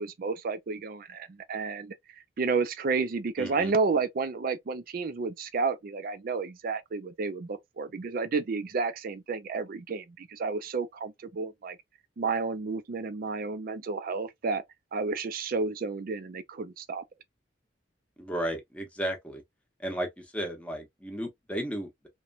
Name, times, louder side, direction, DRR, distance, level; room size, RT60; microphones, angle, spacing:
voice 1, 0.0-2.0 2.4-11.8 12.2-14.6 14.9-17.0, right 4 dB, 50° right, 0.4 m, -31 dB
voice 2, 3.4-3.7 18.2-19.4 19.8-22.1, right 1 dB, 5° left, 0.8 m, -34 dB
3.0 x 2.2 x 2.4 m
head